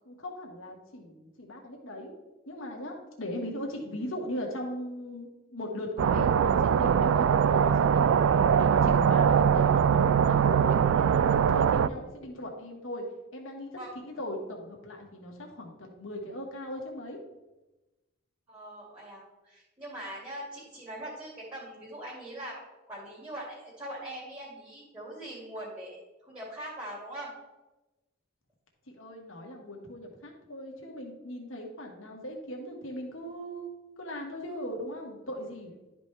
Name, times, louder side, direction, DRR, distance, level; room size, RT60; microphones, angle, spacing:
voice 1, 0.1-2.1 2.5-8.2 8.6-13.0 13.3-17.2 28.9-33.7 34.0-35.7, left 1 dB, 80° left, 0 dB, 1.7 m, -39 dB
sound 1, 6.0-11.9, right 7 dB, 75° right, 0.3 m, -22 dB
voice 2, 18.5-22.6 22.9-27.3, right 1 dB, 20° right, -6 dB, 2.2 m, -42 dB
12.0 x 5.1 x 3.4 m, 1.1 s
head